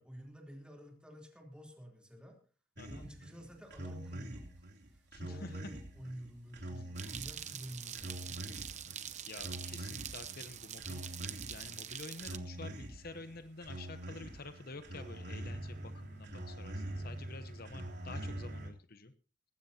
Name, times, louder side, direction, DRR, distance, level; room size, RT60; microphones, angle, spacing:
voice 1, 0.0-2.4 2.9-4.5 4.9-8.6, equal, 5° right, 2 dB, 3.4 m, -50 dB
voice 2, 2.8-3.1 5.1-5.5 6.7-6.9 9.3-11.1 11.5-19.1, left 3 dB, 50° left, 10 dB, 0.9 m, -49 dB
sound 1, 2.8-18.7, right 1 dB, 60° right, 3.3 m, -45 dB
sound 2, 7.0-12.4, right 9 dB, 35° right, 0.8 m, -44 dB
19.0 x 15.5 x 2.8 m, 0.37 s
head